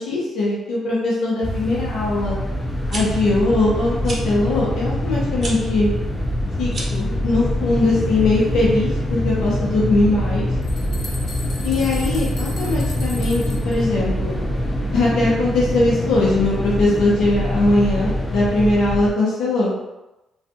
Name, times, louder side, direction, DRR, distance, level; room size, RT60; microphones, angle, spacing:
voice 1, 0.0-2.4 2.9-5.9 6.6-10.5 11.6-14.4 14.9-19.7, left 2 dB, 80° left, -6 dB, 0.8 m, -20 dB
sound 1, 1.4-19.1, left 1 dB, 20° left, 0.4 m, -24 dB
sound 2, 2.7-3.0 4.0-4.2 5.4-5.6 6.6-7.0, right 2 dB, 40° right, 0.6 m, -30 dB
sound 3, 10.6-13.8, left 2 dB, 50° left, 0.7 m, -37 dB
2.5 x 2.3 x 2.7 m, 0.98 s
cardioid pair, 90°, 0 cm